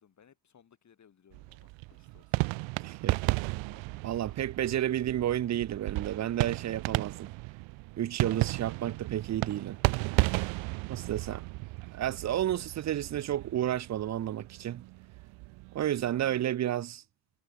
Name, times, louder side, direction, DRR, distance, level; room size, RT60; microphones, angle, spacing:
voice 1, 0.0-3.0 3.5-4.5 15.7-15.8, left 8 dB, 35° left, 5.9 m, -64 dB
sound 1, 1.3-16.4, right 24 dB, 75° right, 0.8 m, -34 dB
voice 2, 2.8-3.2 4.0-7.3 8.0-9.8 10.9-11.4 11.9-14.8 15.7-17.0, right 11 dB, 35° right, 0.7 m, -31 dB
cardioid pair, 120°, 46 cm